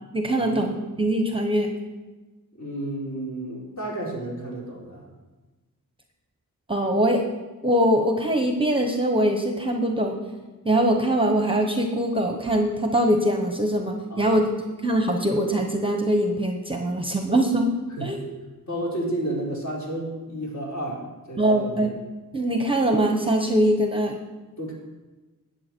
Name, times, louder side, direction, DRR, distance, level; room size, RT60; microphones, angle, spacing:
voice 1, 0.1-1.7 6.7-7.2 7.6-10.2 10.6-14.5 14.8-17.7 18.0-18.2 21.4-21.9 22.3-24.2, right 1 dB, 15° right, 3 dB, 1.0 m, -22 dB
voice 2, 2.5-5.1 14.1-14.5 18.0-18.1 18.7-22.0 24.6-24.7, right 1 dB, 50° left, -4 dB, 4.2 m, -32 dB
19.0 x 7.4 x 4.5 m, 1.2 s
wide cardioid pair, 135°, 35 cm